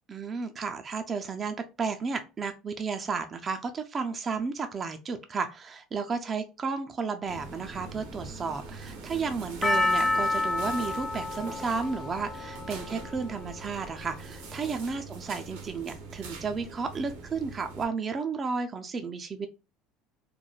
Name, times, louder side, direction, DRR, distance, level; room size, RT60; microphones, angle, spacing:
voice 1, 0.1-19.5, right 5 dB, 35° right, 6 dB, 0.3 m, -33 dB
sound 1, 7.3-17.8, right 3 dB, 75° right, 0.7 m, -43 dB
Percussion, 9.6-14.0 14.6-14.7, left 2 dB, 20° left, 0.6 m, -29 dB
3.0 x 2.1 x 2.3 m, 0.30 s
hypercardioid pair, 80°, 0 cm